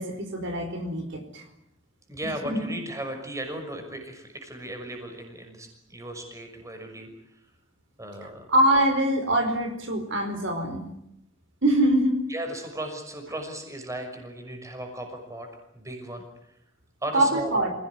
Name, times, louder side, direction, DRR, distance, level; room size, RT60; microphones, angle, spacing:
voice 1, 0.0-1.4 8.5-10.9 11.6-12.2 17.1-17.7, right 1 dB, 65° right, 6 dB, 4.5 m, -23 dB
voice 2, 2.1-7.1 8.0-8.5 12.3-15.5 15.7-16.2 17.0-17.7, right 1 dB, 15° right, 5 dB, 6.0 m, -36 dB
27.5 x 18.0 x 9.6 m, 0.78 s
head